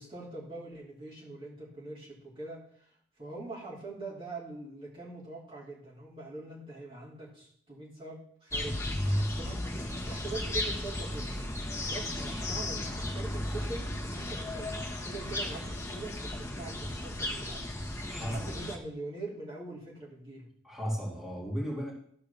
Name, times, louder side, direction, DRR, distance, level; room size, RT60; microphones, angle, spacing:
voice 1, 0.0-9.6 10.1-11.5 11.9-17.7 18.1-20.5, right 2 dB, 30° right, -6 dB, 3.0 m, -43 dB
sound 1, 8.5-18.8, left 1 dB, 15° left, 1.3 m, -34 dB
voice 2, 18.1-18.5 20.6-21.9, equal, ahead, -5 dB, 3.2 m, -35 dB
13.5 x 4.8 x 6.8 m, 0.64 s
head